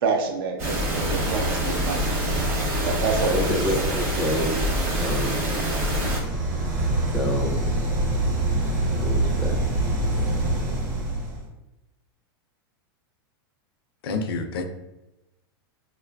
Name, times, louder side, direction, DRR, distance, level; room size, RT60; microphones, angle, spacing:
voice 1, 0.0-2.0 2.8-3.6, right 5 dB, 65° right, 4 dB, 0.6 m, -27 dB
sound 1, 0.6-6.2, equal, 20° right, 0.8 m, -25 dB
voice 2, 3.3-4.6 5.0-5.4 7.1-7.6 9.0-9.6, equal, 5° left, -1 dB, 0.5 m, -27 dB
sound 2, 5.8-11.5, right 2 dB, 45° right, 1.0 m, -25 dB
voice 3, 14.0-14.6, left 4 dB, 75° left, 7 dB, 0.4 m, -28 dB
3.8 x 2.4 x 2.2 m, 0.99 s
supercardioid pair, 145°, 13 cm